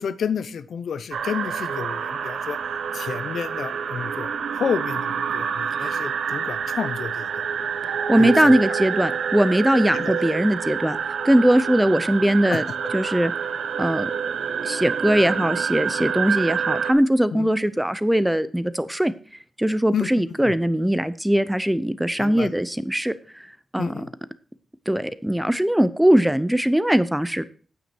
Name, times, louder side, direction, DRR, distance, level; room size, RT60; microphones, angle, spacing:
voice 1, 0.0-2.6 2.9-7.5 8.2-8.5 9.9-10.2 12.5-12.6 17.3-17.5 19.9-20.1 20.4-20.5 22.2-22.5 23.8-24.1, left 7 dB, 70° left, 14 dB, 0.7 m, -30 dB
sound 1, 1.1-16.9, right 7 dB, 80° right, 0.9 m, -27 dB
voice 2, 8.1-11.0 11.2-12.6 12.9-13.3 13.8-14.1 14.6-19.1 19.6-23.1 23.7-23.9 24.9-27.4, right 1 dB, 5° right, 14 dB, 0.6 m, -20 dB
9.1 x 8.2 x 4.5 m, 0.41 s
wide cardioid pair, 120°, 0 cm